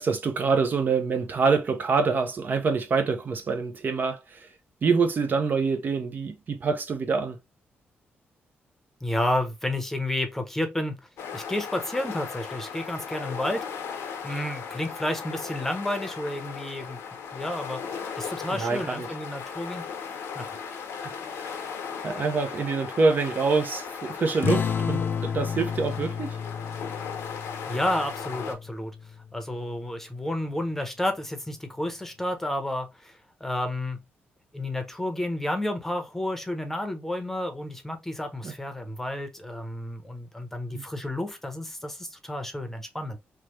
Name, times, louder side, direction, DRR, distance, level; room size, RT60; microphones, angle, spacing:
voice 1, 0.0-4.5 4.8-7.4 18.5-19.1 20.9-21.6 22.0-26.4 38.4-38.5 40.7-40.9, right 4 dB, 45° right, 0.5 m, -26 dB
voice 2, 9.0-11.0 11.3-13.7 14.2-17.0 17.3-17.8 18.2-19.9 20.4-20.5 27.7-28.9 29.3-33.1 33.4-34.0 34.5-43.2, left 1 dB, 10° left, 0.7 m, -31 dB
sound 1, 11.2-28.5, left 6 dB, 90° left, 0.7 m, -37 dB
sound 2, 24.4-29.4, left 7 dB, 55° left, 0.4 m, -31 dB
3.1 x 2.1 x 3.0 m
cardioid pair, 90°, 4 cm